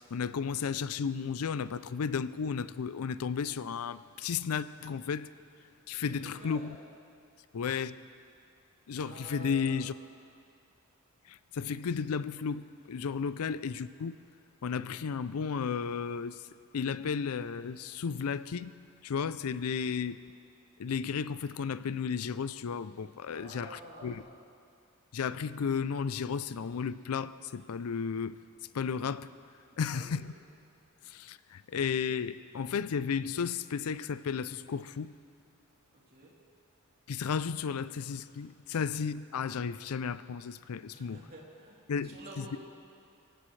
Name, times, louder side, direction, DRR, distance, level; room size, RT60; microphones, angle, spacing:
voice 1, 0.0-5.3 5.9-6.8 7.5-8.0 8.9-9.9 11.3-14.1 14.6-16.4 16.7-18.7 19.0-20.2 20.8-24.2 25.1-28.4 28.7-29.3 29.8-30.3 31.0-35.2 37.1-41.2 41.9-42.4, left 6 dB, 85° left, 0.5 m, -33 dB
voice 2, 6.1-6.7 9.0-9.8 19.8-20.0 23.3-24.3 29.7-30.2 36.1-36.3 40.9-42.6, right 1 dB, 45° right, 3.4 m, -49 dB
24.5 x 16.0 x 3.3 m
head